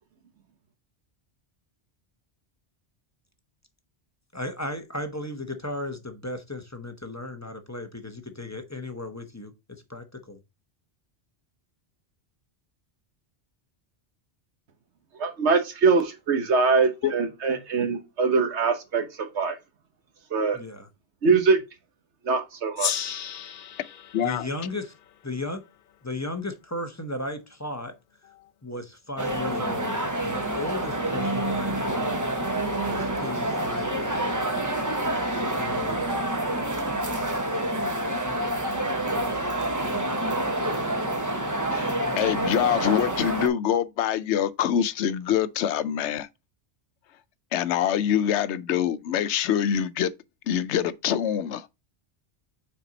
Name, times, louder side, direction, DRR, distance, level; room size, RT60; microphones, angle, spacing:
voice 1, 4.3-10.4 20.5-20.9 24.2-24.9 25.2-25.6 26.0-27.9 28.6-32.2 32.9-34.5 35.6-36.2, left 2 dB, 15° left, 0.8 m, -35 dB
voice 2, 15.2-19.1 19.3-19.6 20.3-20.6 21.2-21.6 22.2-23.1, right 4 dB, 80° right, 1.4 m, -23 dB
Gong, 22.8-25.9, left 9 dB, 60° left, 0.6 m, -34 dB
voice 3, 24.1-24.5 41.7-46.3 47.5-50.1 50.5-51.7, left 9 dB, 80° left, 0.9 m, -25 dB
sound 1, 29.2-43.5, right 1 dB, 15° right, 1.0 m, -27 dB
5.9 x 4.6 x 3.9 m
omnidirectional pair, 1.1 m